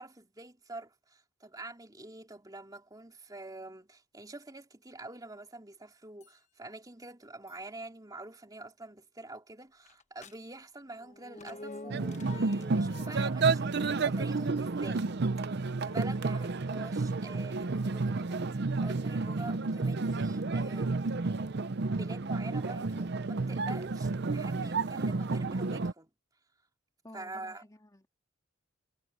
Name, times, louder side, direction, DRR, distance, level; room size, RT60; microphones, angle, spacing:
voice 1, 0.0-15.1 15.5-21.0 21.7-26.1 27.1-27.6, right 2 dB, 20° right, 3.2 m, -46 dB
sound 1, 6.2-6.3 7.5-7.6 9.9-10.4 11.0-13.3, left 3 dB, 35° left, 1.1 m, -47 dB
sound 2, 11.9-25.9, right 3 dB, 50° right, 0.6 m, -31 dB
voice 2, 27.0-28.1, left 1 dB, 15° left, 2.6 m, -52 dB
head